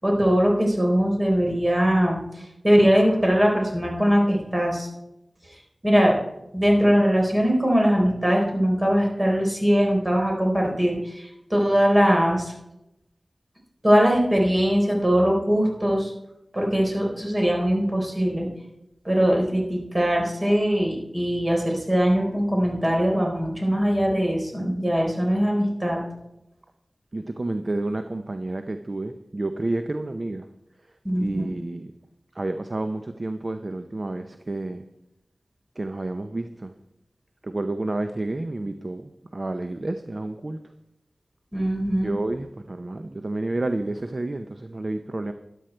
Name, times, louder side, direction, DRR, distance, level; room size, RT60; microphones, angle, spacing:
voice 1, 0.0-4.9 5.8-6.1 6.5-12.5 13.8-16.1 16.5-18.5 19.0-26.0 31.0-31.5 41.5-42.1, equal, 25° right, 0 dB, 4.0 m, -21 dB
voice 2, 27.1-30.5 31.2-31.9 32.3-34.8 35.8-36.7 37.4-40.6 42.0-45.3, right 2 dB, 45° right, 8 dB, 0.7 m, -30 dB
13.0 x 11.0 x 4.5 m, 0.87 s
wide cardioid pair, 60°, 0 cm